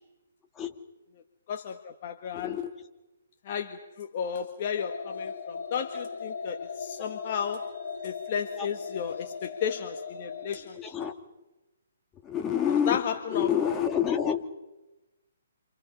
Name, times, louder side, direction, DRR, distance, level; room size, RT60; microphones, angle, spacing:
voice 1, 1.5-2.5 3.4-7.7 8.0-10.9 12.9-13.5, left 8 dB, 40° left, 4 dB, 1.7 m, -33 dB
voice 2, 2.3-2.9 7.0-7.1 8.6-8.7 10.5-11.3 12.1-14.4, left 8 dB, 15° left, 4 dB, 2.1 m, -29 dB
sound 1, 4.8-10.5, left 5 dB, 75° left, 5.1 m, -38 dB
28.5 x 27.0 x 5.4 m, 1.0 s
hypercardioid pair, 155°, 0 cm